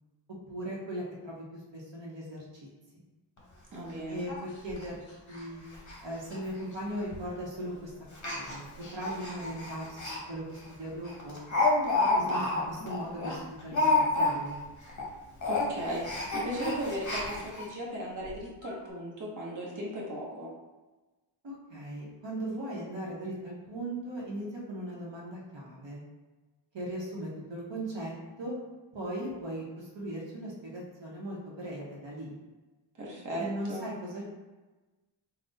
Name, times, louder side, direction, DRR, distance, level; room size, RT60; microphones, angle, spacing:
voice 1, 0.5-2.4 4.1-5.0 5.3-5.6 6.0-7.9 8.2-8.7 8.9-11.5 12.1-14.6 21.4-26.0 26.7-28.5 28.9-32.3 33.4-34.2, right 1 dB, 70° right, -4 dB, 1.0 m, -38 dB
Speech, 3.4-3.5 3.8-3.9 4.3-4.4 4.7-4.9 5.3-5.4 5.7-6.0 6.3-6.4 7.1-7.4 8.1-10.2 10.6-10.7 11.0-14.6 14.9-15.1 15.4-17.7 18.3-18.4 18.6-18.7, left 2 dB, 40° left, 0.9 m, -30 dB
voice 2, 3.7-4.3 15.5-16.1 16.3-20.5 33.0-33.9, equal, 40° right, -4 dB, 1.0 m, -36 dB
3.6 x 2.3 x 4.0 m, 1.2 s
wide cardioid pair, 95°, 46 cm